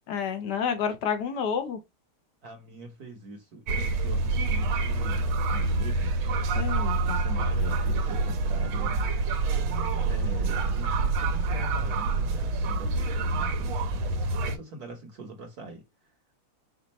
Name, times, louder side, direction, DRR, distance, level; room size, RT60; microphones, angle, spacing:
voice 1, 0.1-1.8 6.5-7.2, left 7 dB, 60° left, 1.2 m, -29 dB
voice 2, 2.4-6.1 7.0-9.0 10.0-14.2 14.4-15.8, right 2 dB, 55° right, 1.2 m, -43 dB
sound 1, 3.7-14.6, right 3 dB, 80° right, 1.5 m, -27 dB
5.3 x 2.5 x 4.1 m
omnidirectional pair, 2.3 m